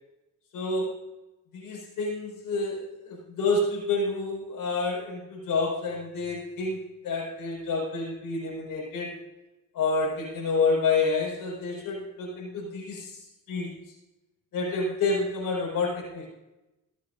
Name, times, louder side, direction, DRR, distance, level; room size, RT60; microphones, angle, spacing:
voice 1, 0.5-0.9 1.5-6.8 7.0-9.1 9.7-13.1 13.5-13.7 14.5-16.3, left 3 dB, 90° left, -4 dB, 5.0 m, -28 dB
23.5 x 8.5 x 2.6 m, 1.0 s
cardioid pair, 85°, 33 cm